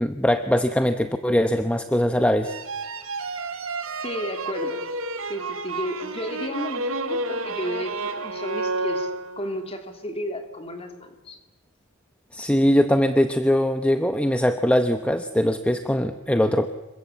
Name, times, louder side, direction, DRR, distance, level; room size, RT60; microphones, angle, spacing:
voice 1, 0.0-2.6 12.3-16.7, equal, 5° left, 8 dB, 0.8 m, -21 dB
sound 1, 2.4-9.6, right 2 dB, 65° right, 2.1 m, -30 dB
voice 2, 4.0-4.8 5.3-9.1 9.4-11.4, equal, 25° left, 5 dB, 3.0 m, -33 dB
26.5 x 22.0 x 8.4 m, 1.1 s
head